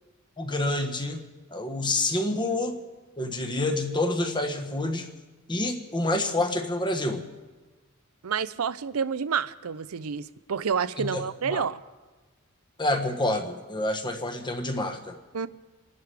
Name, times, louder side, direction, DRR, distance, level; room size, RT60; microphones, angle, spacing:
voice 1, 0.4-1.2 1.5-2.8 3.2-5.1 5.5-7.2 11.0-11.6 12.8-15.2, left 2 dB, 20° left, 5 dB, 1.3 m, -28 dB
voice 2, 8.2-11.8 15.3-15.5, right 6 dB, 80° right, 15 dB, 0.6 m, -29 dB
28.5 x 11.5 x 3.4 m, 1.2 s
head